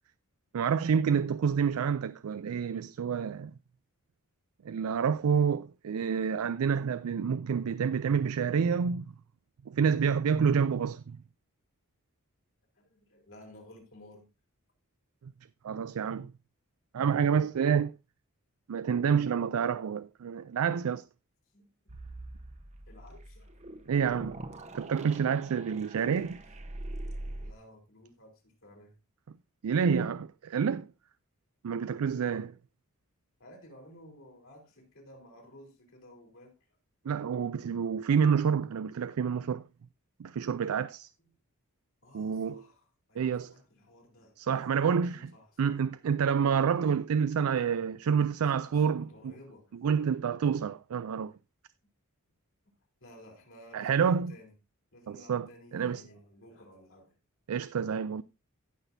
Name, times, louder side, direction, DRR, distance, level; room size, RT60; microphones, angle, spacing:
voice 1, 0.5-3.5 4.6-9.0 9.7-11.2 15.2-15.3 15.6-16.3 16.9-17.9 18.7-21.0 23.9-24.4 24.7-26.4 29.6-30.9 31.6-32.5 37.1-39.6 40.2-41.1 42.1-42.6 43.2-43.5 44.4-45.3 45.6-49.3 49.8-51.3 53.7-54.3 55.1-55.5 55.7-56.0 57.5-58.2, right 6 dB, 80° right, 0.4 m, -28 dB
voice 2, 12.7-14.3 21.5-21.7 22.9-23.6 27.4-28.9 33.4-36.5 41.2-41.3 42.0-46.0 48.0-48.1 48.4-49.7 53.0-54.5 54.9-57.1, left 1 dB, 60° left, 3.8 m, -54 dB
sound 1, 21.9-27.5, right 1 dB, 30° right, 0.9 m, -43 dB
17.0 x 6.0 x 2.7 m
head